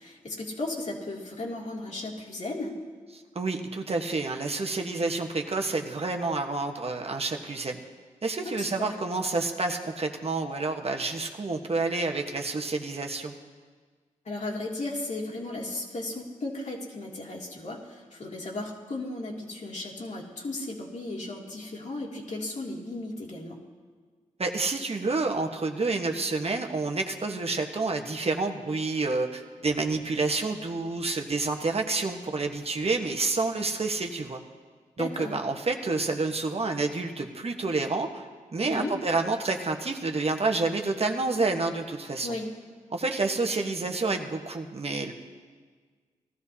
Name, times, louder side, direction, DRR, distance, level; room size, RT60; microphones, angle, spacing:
voice 1, 0.0-2.7 8.4-8.9 14.2-23.6 35.0-35.4 38.6-38.9 42.2-42.5, left 2 dB, 55° left, -2 dB, 2.6 m, -35 dB
voice 2, 3.3-7.8 8.2-13.3 24.4-34.4 35.0-38.3 38.5-42.4 42.9-45.1, right 3 dB, 45° right, 3 dB, 1.3 m, -29 dB
18.0 x 13.0 x 2.8 m, 1.5 s
cardioid pair, 45°, 14 cm